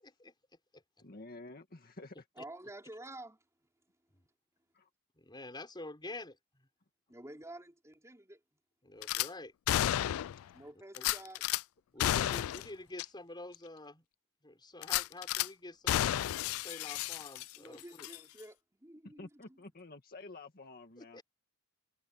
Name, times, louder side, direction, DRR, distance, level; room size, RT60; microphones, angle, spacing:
voice 1, 1.0-2.2 4.7-4.9 10.4-10.5 19.2-21.2, left 2 dB, 45° left, 1.9 m, -50 dB
voice 2, 2.4-3.7 7.1-8.4 10.5-11.4 12.2-12.4 17.5-19.6, right 1 dB, 15° right, 4.0 m, -50 dB
voice 3, 5.1-6.7 8.8-9.5 10.9-11.0 11.9-14.0 14.4-16.3 16.5-18.1 21.0-21.2, left 2 dB, 20° left, 4.9 m, -48 dB
Gunshot gunfire / Glass, 9.0-9.3 9.7-10.4 11.0-11.6 12.0-12.7 13.0-13.1 13.5-13.6 14.8-15.5 15.9-17.7 18.0-18.2, left 12 dB, 65° left, 0.3 m, -32 dB
head